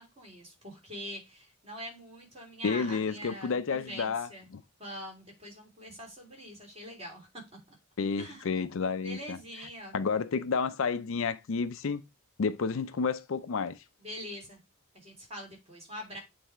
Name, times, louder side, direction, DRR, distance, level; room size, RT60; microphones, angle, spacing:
voice 1, 0.0-4.5 4.8-7.8 8.1-8.6 9.0-10.0 14.0-14.6 14.9-16.2, equal, 25° right, 3.3 m, -44 dB
voice 2, 2.6-4.6 8.0-9.4 9.9-12.0 12.4-13.8, left 5 dB, 60° left, 0.4 m, -30 dB
8.4 x 3.3 x 4.4 m
head